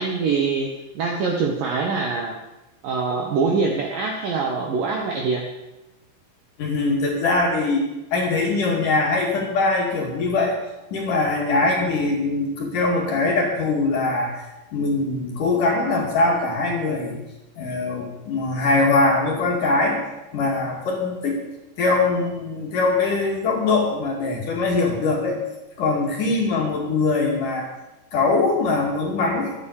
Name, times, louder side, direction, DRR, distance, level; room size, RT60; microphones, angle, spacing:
voice 1, 0.0-2.3 2.8-5.5, right 4 dB, 70° right, 1 dB, 2.2 m, -24 dB
voice 2, 6.6-7.8 8.1-10.5 10.9-14.4 14.7-17.2 17.6-20.0 20.3-21.4 21.8-25.4 25.8-27.7 28.1-29.5, left 3 dB, 50° left, -1 dB, 3.3 m, -22 dB
13.0 x 9.4 x 8.2 m, 0.97 s
omnidirectional pair, 5.6 m